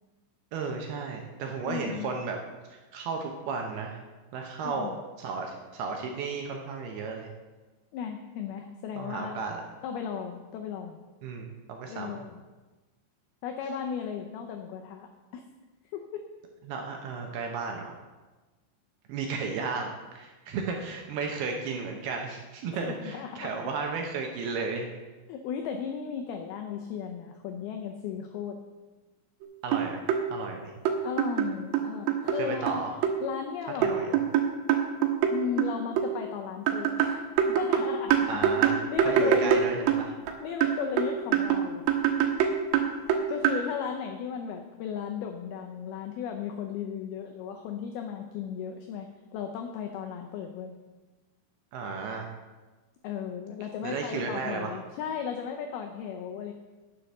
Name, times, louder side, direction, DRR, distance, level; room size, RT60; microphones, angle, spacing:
voice 1, 0.5-2.4 2.7-4.0 4.3-4.9 5.2-7.3 9.0-9.6 11.2-12.2 16.7-17.9 19.1-24.9 29.6-30.0 30.3-30.7 32.3-32.9 33.8-34.2 38.3-38.8 39.1-39.9 51.7-52.3 53.8-54.7, right 4 dB, 75° right, 2 dB, 2.5 m, -34 dB
voice 2, 1.7-2.1 4.6-5.0 7.9-9.4 9.8-11.0 11.9-12.4 13.4-15.4 15.9-16.2 22.8-23.6 25.3-28.6 31.0-32.8 33.2-34.2 35.3-38.5 38.9-39.7 40.4-41.8 43.3-50.8 53.0-56.5, left 7 dB, 85° left, 4 dB, 2.2 m, -35 dB
sound 1, 29.4-29.5 29.7-30.2 30.9-32.4 32.7-33.2 33.8-36.1 36.7-40.3 40.6-43.6, right 8 dB, 90° right, 3.5 m, -25 dB
10.0 x 7.6 x 6.6 m, 1.2 s
omnidirectional pair, 5.4 m